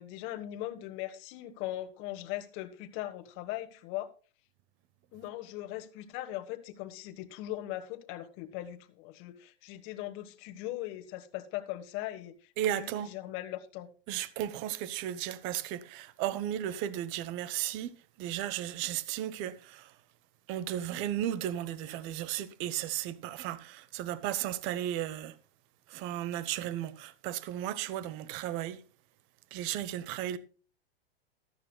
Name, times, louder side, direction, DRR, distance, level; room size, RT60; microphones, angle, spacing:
voice 1, 0.0-4.1 5.1-13.9, left 15 dB, 40° left, 1.3 m, -40 dB
voice 2, 12.6-13.1 14.1-19.9 20.5-25.4 25.9-28.8 29.5-30.4, right 12 dB, 40° right, 1.0 m, -35 dB
14.5 x 12.5 x 2.3 m
hypercardioid pair, 120°, 31 cm